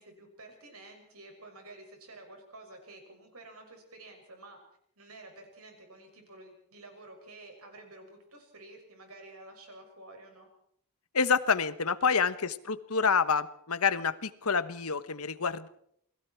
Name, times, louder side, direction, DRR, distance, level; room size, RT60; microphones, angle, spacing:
voice 1, 0.0-4.6 5.0-10.5 12.0-12.4, right 2 dB, 80° right, 3 dB, 6.6 m, -51 dB
voice 2, 11.1-15.7, left 5 dB, 80° left, 14 dB, 1.2 m, -28 dB
29.0 x 21.0 x 4.6 m, 0.67 s
head